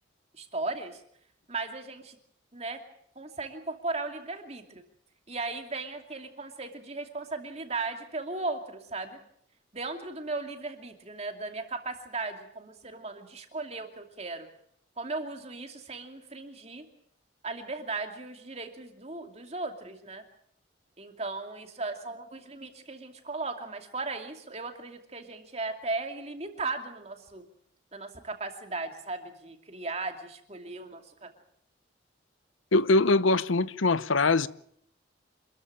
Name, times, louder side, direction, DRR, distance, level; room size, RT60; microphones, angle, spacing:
voice 1, 0.3-1.0 1.5-2.2 2.5-2.8 3.2-4.8 5.3-9.2 9.7-14.5 15.0-16.9 17.4-20.2 21.0-27.4 27.9-31.3, right 3 dB, 35° right, 2.6 m, -37 dB
voice 2, 32.7-34.5, left 3 dB, 90° left, 0.8 m, -22 dB
26.5 x 14.0 x 8.8 m
head